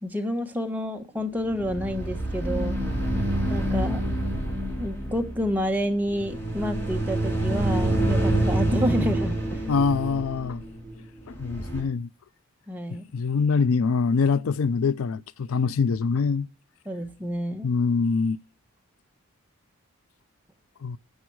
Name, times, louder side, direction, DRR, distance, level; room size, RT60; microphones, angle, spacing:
voice 1, 0.0-2.8 3.5-4.0 4.8-9.6 12.7-13.1 16.9-17.7, equal, 10° right, 1.1 m, -29 dB
sound 1, 1.5-11.8, right 1 dB, 10° left, 3.0 m, -27 dB
voice 2, 9.7-10.6 11.3-12.1 12.9-16.5 17.6-18.4 20.8-21.0, left 5 dB, 80° left, 0.5 m, -24 dB
12.0 x 8.1 x 4.7 m
head